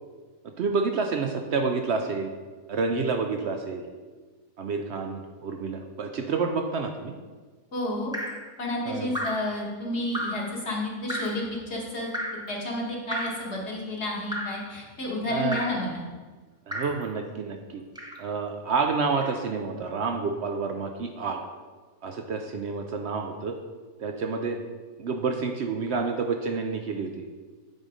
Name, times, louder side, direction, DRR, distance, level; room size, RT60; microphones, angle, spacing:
voice 1, 0.6-2.3 2.7-3.8 4.6-7.1 8.9-9.1 15.3-15.6 16.7-17.8 18.2-21.4 22.0-23.6 24.0-24.6 25.0-27.2, right 4 dB, 65° right, 4 dB, 0.7 m, -29 dB
voice 2, 7.7-8.1 8.6-12.1 12.5-16.0, left 1 dB, 50° left, -3 dB, 1.7 m, -31 dB
Drip, 8.1-8.5 9.1-9.5 10.1-10.5 11.1-11.4 12.1-12.5 13.1-13.5 14.3-14.7 15.5-15.8 16.7-17.0 18.0-18.3 19.2-19.4, equal, 5° right, 0.5 m, -33 dB
9.0 x 4.0 x 5.0 m, 1.4 s
omnidirectional pair, 1.5 m